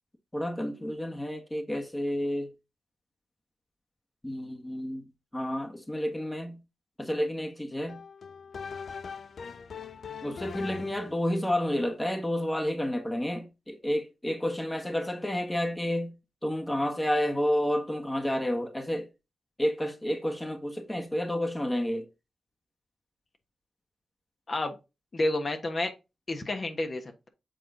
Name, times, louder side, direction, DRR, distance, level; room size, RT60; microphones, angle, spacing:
voice 1, 0.3-2.5 4.2-5.0 5.3-6.6 7.0-8.0 10.2-16.1 16.4-19.1 19.6-22.1, equal, 15° left, 1.4 m, -30 dB
sound 1, 7.9-11.2, left 6 dB, 70° left, 0.4 m, -41 dB
voice 2, 25.1-25.9 26.3-27.3, left 2 dB, 45° left, 1.3 m, -30 dB
7.6 x 3.7 x 3.8 m
cardioid pair, 55°, 0 cm